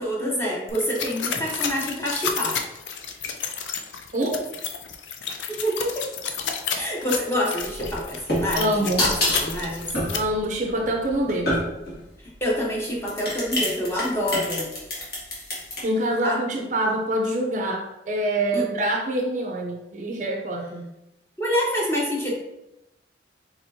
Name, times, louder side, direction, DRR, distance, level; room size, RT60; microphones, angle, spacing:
voice 1, 0.0-2.6 5.5-6.1 6.7-9.9 12.4-14.7 16.2-16.4 18.5-18.7 21.4-22.3, equal, 15° left, -3 dB, 0.8 m, -27 dB
sound 1, 0.7-10.2, left 7 dB, 85° left, 0.5 m, -31 dB
voice 2, 4.1-4.4 8.5-9.1 10.1-11.5 15.8-20.9, right 1 dB, 45° right, 2 dB, 0.5 m, -25 dB
sound 2, 7.7-12.0 12.8-15.8, left 1 dB, 55° left, 1.6 m, -27 dB
4.3 x 4.1 x 2.7 m, 0.91 s
head